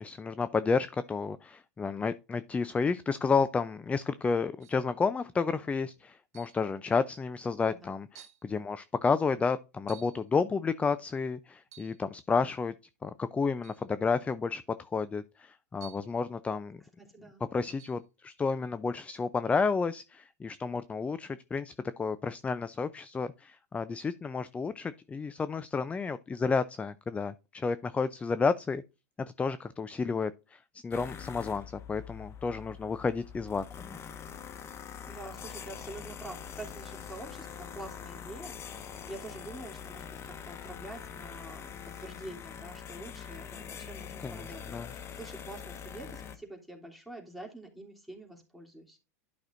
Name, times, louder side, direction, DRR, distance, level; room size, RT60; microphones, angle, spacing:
voice 1, 0.0-12.7 13.0-14.6 14.9-16.8 17.5-28.8 29.4-34.0 44.2-44.9, left 4 dB, 15° left, 0.5 m, -31 dB
sound 1, 4.6-4.9 6.3-6.7 7.5-7.6 8.2-8.5 9.9-10.3 11.6-12.0 13.6-13.9 15.8-16.2 17.8-18.0, right 9 dB, 70° right, 2.1 m, -53 dB
voice 2, 7.6-7.9 17.0-17.4 35.1-49.0, right 2 dB, ahead, 3.0 m, -46 dB
sound 2, 30.9-46.4, left 8 dB, 30° left, 1.3 m, -44 dB
11.5 x 6.0 x 2.6 m
hypercardioid pair, 110°, 9 cm